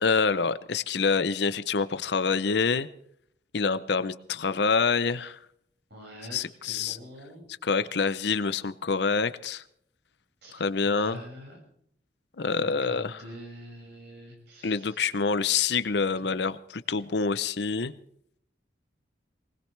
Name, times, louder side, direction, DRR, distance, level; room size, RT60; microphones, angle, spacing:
voice 1, 0.0-2.9 3.5-5.4 6.3-7.0 7.6-9.6 10.5-11.2 12.4-13.2 14.6-17.9, left 5 dB, 65° left, 14 dB, 0.7 m, -26 dB
voice 2, 5.9-7.5 10.4-11.6 12.4-15.0 16.2-16.3, equal, 65° right, 0 dB, 6.2 m, -45 dB
20.5 x 19.5 x 3.3 m, 0.68 s
head